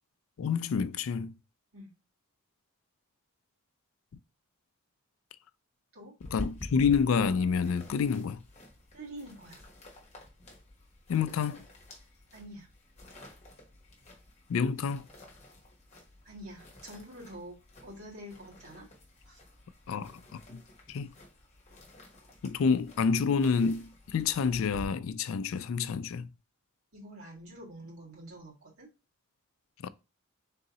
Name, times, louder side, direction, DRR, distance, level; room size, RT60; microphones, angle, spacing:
voice 1, 0.4-1.3 6.3-8.4 11.1-11.6 14.5-15.1 19.9-20.6 20.9-21.1 22.4-26.3 29.8-29.9, left 6 dB, 70° left, 0.3 m, -28 dB
sound 1, 6.2-24.9, left 1 dB, 30° left, 1.1 m, -50 dB
voice 2, 8.9-9.6 12.3-12.7 16.2-17.6 17.8-18.9 19.3-19.4 26.9-28.9, right 1 dB, 75° right, 2.2 m, -46 dB
3.7 x 2.8 x 4.0 m
head